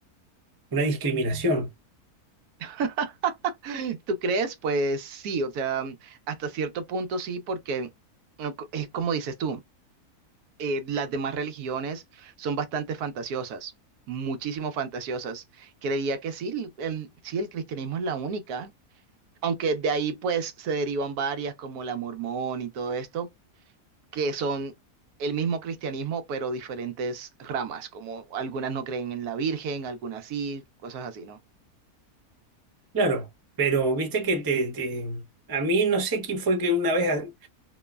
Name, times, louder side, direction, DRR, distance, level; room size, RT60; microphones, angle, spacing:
voice 1, 0.7-1.7 32.9-33.3 33.6-35.2 35.5-37.5, right 2 dB, 35° right, 0.3 m, -25 dB
voice 2, 2.6-7.9 8.4-9.6 10.6-13.7 14.1-18.7 19.4-23.3 24.1-24.7 25.2-31.4, right 4 dB, 80° right, 1.2 m, -30 dB
3.0 x 2.0 x 2.2 m
omnidirectional pair, 1.6 m